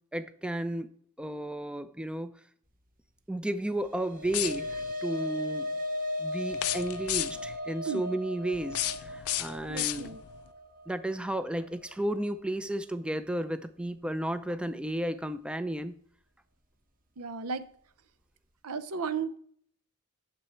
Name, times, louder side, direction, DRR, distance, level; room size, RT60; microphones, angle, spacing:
voice 1, 0.1-0.9 1.2-2.3 3.3-5.7 6.2-10.2 10.9-16.0, right 1 dB, 5° right, 11 dB, 0.4 m, -33 dB
sound 1, 3.8-12.3, left 2 dB, 40° right, 1.0 m, -37 dB
sound 2, 4.2-4.9 6.5-7.6 8.5-10.4, left 13 dB, 75° left, 0.5 m, -33 dB
voice 2, 9.7-10.2 17.2-17.7 18.6-19.4, right 5 dB, 85° right, 13 dB, 0.7 m, -34 dB
9.6 x 6.9 x 4.3 m, 0.62 s
head